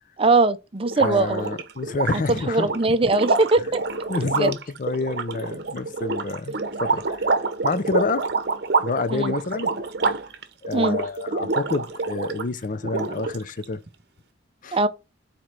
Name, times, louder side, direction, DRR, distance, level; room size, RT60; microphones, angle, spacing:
voice 1, 0.2-1.5 2.3-3.8 4.2-4.5 9.1-9.3 10.7-11.0 14.7-14.9, right 3 dB, 30° right, 0.5 m, -21 dB
sound 1, 0.9-12.5 12.8-13.6, right 3 dB, 60° right, 0.8 m, -27 dB
voice 2, 1.0-2.7 3.0-3.1 4.1-7.4 7.6-8.3 8.8-9.7 10.6-13.8 14.6-14.8, left 3 dB, 45° left, 0.5 m, -28 dB
4.9 x 4.3 x 5.9 m
head